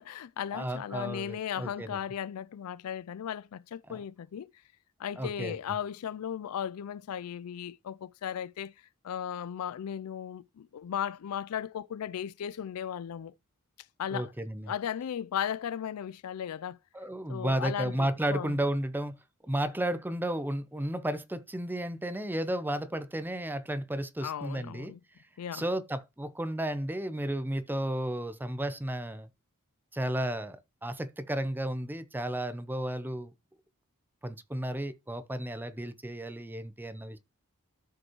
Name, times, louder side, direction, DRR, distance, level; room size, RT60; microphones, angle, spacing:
voice 1, 0.0-4.5 5.0-8.7 9.0-13.3 14.0-14.3 14.7-16.8 17.3-18.6 24.2-25.0 25.4-25.7, left 9 dB, 70° left, 0.4 m, -36 dB
voice 2, 0.5-2.0 3.9-4.0 5.2-5.6 14.1-14.7 16.9-19.2 19.4-24.9 25.5-29.3 29.9-33.3 34.2-37.2, right 1 dB, 10° right, 0.6 m, -33 dB
13.0 x 5.3 x 3.0 m
head